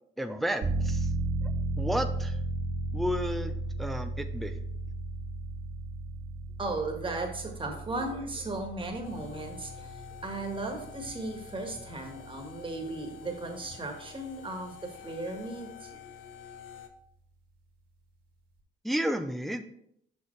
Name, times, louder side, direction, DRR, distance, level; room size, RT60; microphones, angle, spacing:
voice 1, 0.2-1.1 1.4-2.4 2.9-4.5 18.8-19.6, equal, ahead, 8 dB, 0.4 m, -32 dB
sound 1, 0.6-13.1 13.5-13.6, right 2 dB, 90° right, 2.1 m, -35 dB
voice 2, 6.6-16.0, right 2 dB, 25° right, 3 dB, 1.5 m, -36 dB
sound 2, 9.0-16.9, left 9 dB, 75° left, 0.7 m, -48 dB
6.5 x 5.5 x 3.2 m, 0.71 s
cardioid pair, 90°, 20 cm